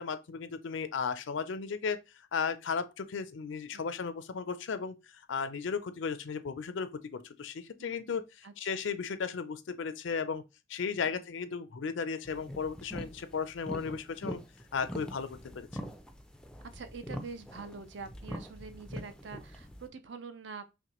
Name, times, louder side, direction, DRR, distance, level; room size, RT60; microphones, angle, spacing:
voice 1, 0.0-2.0 2.3-10.4 10.7-14.4 14.7-15.7, left 5 dB, 65° left, 0.5 m, -35 dB
voice 2, 7.8-8.1 8.4-8.8 11.0-11.2 16.7-20.6, right 5 dB, 60° right, 0.5 m, -45 dB
sound 1, 12.2-19.9, equal, 5° left, 0.4 m, -43 dB
5.7 x 2.2 x 2.9 m
head